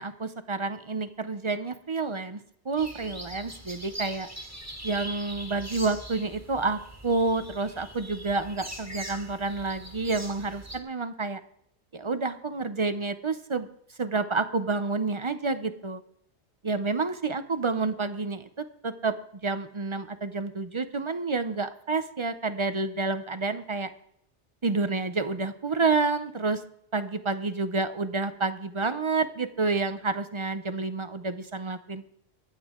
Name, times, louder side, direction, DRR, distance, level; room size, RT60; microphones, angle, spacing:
voice 1, 0.0-2.4 2.7-4.3 4.8-11.4 11.9-13.7 14.0-16.0 16.6-19.1 19.4-23.9 24.6-26.6 26.9-32.0, right 3 dB, 35° right, 11 dB, 0.5 m, -29 dB
amazing birds singing in Polish forest front, 2.8-10.8, right 1 dB, 15° right, 1.7 m, -42 dB
24.0 x 8.3 x 3.7 m, 0.70 s
omnidirectional pair, 1.2 m